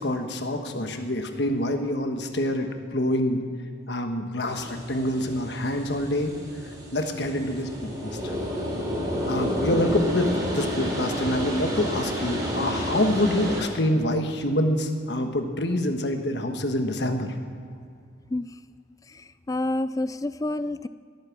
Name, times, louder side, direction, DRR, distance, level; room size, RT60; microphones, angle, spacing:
voice 1, 0.0-3.4 3.9-6.3 6.9-7.7 8.0-8.3 9.2-17.3, left 1 dB, 60° left, 5 dB, 1.3 m, -26 dB
sound 1, 4.5-13.6, equal, 20° right, 3.0 m, -30 dB
voice 2, 19.5-20.9, left 2 dB, 20° left, 14 dB, 0.3 m, -28 dB
18.0 x 8.8 x 6.0 m, 2.3 s
head